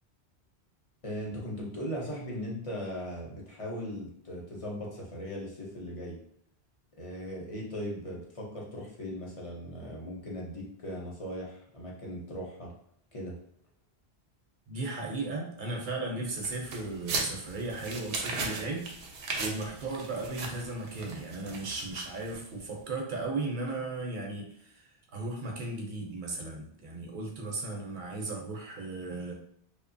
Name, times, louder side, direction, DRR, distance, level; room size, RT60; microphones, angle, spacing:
voice 1, 1.0-6.2 7.0-12.7 13.1-13.4, equal, 40° left, -3 dB, 0.6 m, -38 dB
voice 2, 14.7-18.9 19.4-24.8 25.1-29.4, right 2 dB, 55° right, 0 dB, 0.7 m, -36 dB
sound 1, 16.4-22.6, right 3 dB, 90° right, 0.9 m, -38 dB
2.7 x 2.1 x 2.5 m, 0.68 s
omnidirectional pair, 1.1 m